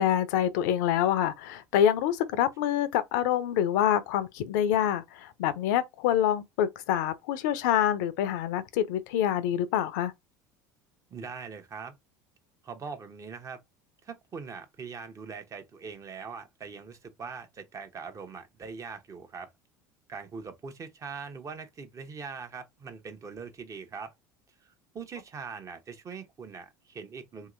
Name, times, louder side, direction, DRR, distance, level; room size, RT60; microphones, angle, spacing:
voice 1, 0.0-10.1, left 10 dB, 70° left, 0.5 m, -26 dB
voice 2, 11.1-11.9 12.6-13.6 14.0-19.5 20.1-24.1 24.6-27.5, right 5 dB, 35° right, 0.8 m, -42 dB
2.9 x 2.8 x 2.4 m
hypercardioid pair, 80°, 10 cm